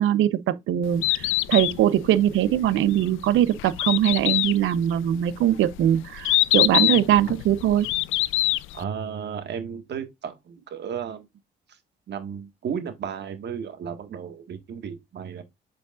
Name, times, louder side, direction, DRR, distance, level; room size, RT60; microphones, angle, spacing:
voice 1, 0.0-7.9, right 11 dB, 80° right, 0.7 m, -22 dB
Bird, 0.8-8.8, left 16 dB, 85° left, 0.4 m, -25 dB
voice 2, 8.7-11.3 12.1-15.4, right 7 dB, 60° right, 1.6 m, -34 dB
8.2 x 5.1 x 2.4 m
cardioid pair, 90°, 20 cm